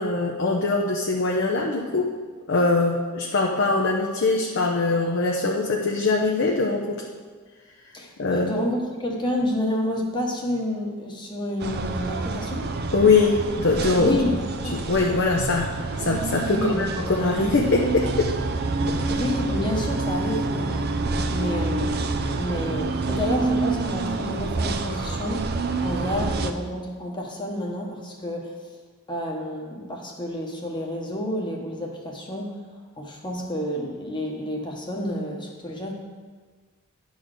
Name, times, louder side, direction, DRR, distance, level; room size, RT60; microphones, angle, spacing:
voice 1, 0.0-2.2 2.5-7.0 8.2-8.5 12.9-14.2 14.7-18.3 18.9-19.0, left 3 dB, 55° left, 0 dB, 0.7 m, -22 dB
voice 2, 7.9-12.7 14.0-14.4 14.6-14.8 16.5-17.1 19.1-25.5 25.8-28.5 29.1-32.6 33.0-35.9, left 1 dB, 20° left, 0 dB, 1.1 m, -29 dB
sound 1, 11.6-26.5, right 3 dB, 45° right, 0.5 m, -27 dB
10.5 x 4.0 x 6.5 m, 1.5 s
head